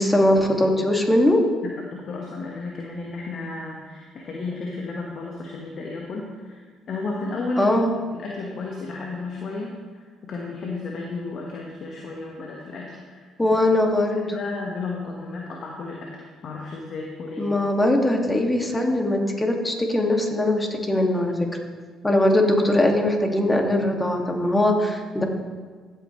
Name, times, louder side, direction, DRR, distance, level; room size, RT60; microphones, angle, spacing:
voice 1, 0.0-1.4 7.6-7.9 13.4-14.4 17.4-21.5 22.0-25.2, left 1 dB, 15° left, 2 dB, 2.2 m, -21 dB
voice 2, 1.6-7.8 8.1-13.3 14.3-17.5, left 3 dB, 55° left, -1 dB, 1.4 m, -33 dB
15.0 x 8.8 x 3.2 m, 1.5 s
hypercardioid pair, 50°, 0 cm